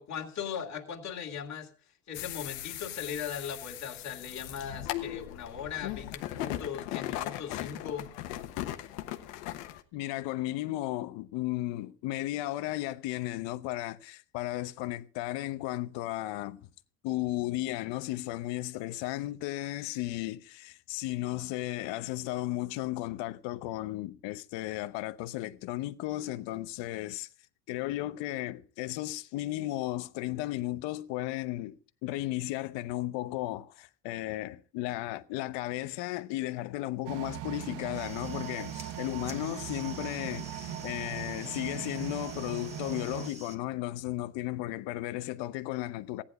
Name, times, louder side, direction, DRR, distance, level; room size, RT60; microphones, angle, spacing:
voice 1, 0.0-1.7 2.1-8.1, left 8 dB, 35° left, 2.5 m, -38 dB
sound 1, 2.1-9.8, left 14 dB, 90° left, 1.3 m, -38 dB
voice 2, 9.9-16.7 17.0-27.3 27.7-46.2, left 16 dB, 65° left, 1.0 m, -35 dB
sound 2, 37.1-43.3, right 10 dB, 60° right, 1.1 m, -39 dB
sound 3, 37.8-43.6, right 2 dB, 15° right, 1.7 m, -48 dB
15.0 x 10.0 x 4.9 m
supercardioid pair, 105°, 46 cm